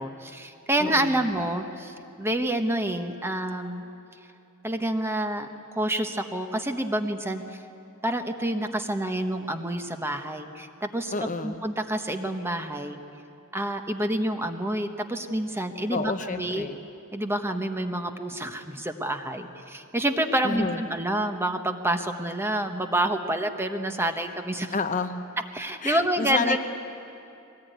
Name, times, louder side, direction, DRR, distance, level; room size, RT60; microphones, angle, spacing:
voice 1, 0.0-3.8 4.6-5.5 5.7-7.6 8.0-13.0 13.5-16.7 17.1-24.7 25.5-26.6, right 1 dB, 10° right, 6 dB, 1.1 m, -28 dB
voice 2, 0.8-1.2 11.1-11.6 15.9-16.8 20.4-20.8 24.7-25.2 25.8-26.6, left 4 dB, 40° left, 7 dB, 0.8 m, -30 dB
22.5 x 18.5 x 9.2 m, 2.7 s
head